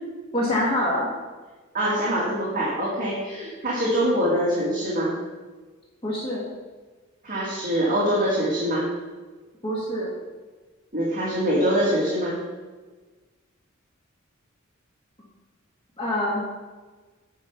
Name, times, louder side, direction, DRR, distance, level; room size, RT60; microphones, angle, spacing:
voice 1, 0.3-1.1 6.0-6.5 9.6-10.1 16.0-16.5, left 1 dB, 25° left, -5 dB, 1.8 m, -25 dB
voice 2, 1.7-5.1 7.2-8.9 10.9-12.4, equal, 40° right, -6 dB, 2.1 m, -24 dB
9.6 x 5.5 x 5.9 m, 1.3 s
head